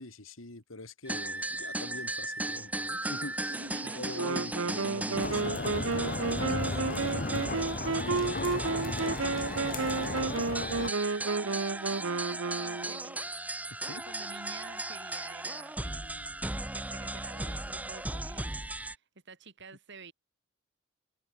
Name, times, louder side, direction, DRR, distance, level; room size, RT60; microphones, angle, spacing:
voice 1, 0.0-3.5 3.9-6.8 8.0-9.1 13.9-14.0, left 2 dB, 80° left, 2.7 m, -44 dB
sound 1, 1.1-18.9, right 2 dB, 10° right, 0.8 m, -37 dB
voice 2, 3.4-4.5 8.5-8.6 9.6-16.5 16.7-20.1, right 4 dB, 60° right, 6.3 m, -50 dB
Wind instrument woodwind instrument, 4.1-13.2, right 4 dB, 85° right, 1.0 m, -32 dB
sound 2, 5.1-10.9, left 2 dB, 45° left, 1.9 m, -35 dB
head